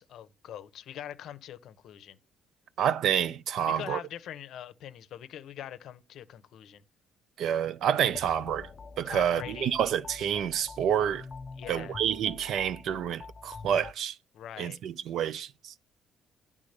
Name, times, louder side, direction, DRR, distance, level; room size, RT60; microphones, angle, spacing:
voice 1, 0.0-2.2 3.7-6.8 9.0-9.7 11.6-12.0 14.3-14.8, left 10 dB, 65° left, 0.7 m, -43 dB
voice 2, 2.8-4.0 7.4-8.7 9.0-11.3 11.7-14.2 14.6-15.8, right 9 dB, 65° right, 0.5 m, -28 dB
sound 1, 8.1-13.9, left 4 dB, 30° left, 0.4 m, -45 dB
9.7 x 3.6 x 6.5 m
cardioid pair, 130°, 0 cm